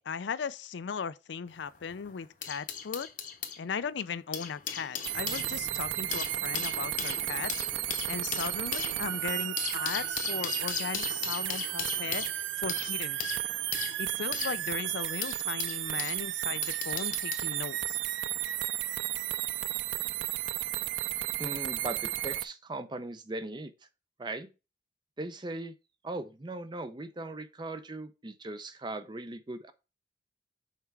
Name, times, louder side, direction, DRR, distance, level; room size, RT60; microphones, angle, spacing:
voice 1, 0.0-3.1 3.6-7.5 8.1-13.3 14.0-18.0, left 6 dB, 70° left, 0.4 m, -37 dB
sound 1, 1.5-3.6 4.1-16.2 16.6-17.5 18.4-18.6, left 8 dB, 45° left, 0.8 m, -38 dB
sound 2, 5.0-22.4, right 14 dB, 75° right, 0.3 m, -33 dB
voice 2, 21.4-23.7 24.2-24.5 25.2-25.7 26.0-29.7, right 2 dB, 25° right, 0.5 m, -39 dB
5.8 x 4.5 x 4.6 m
head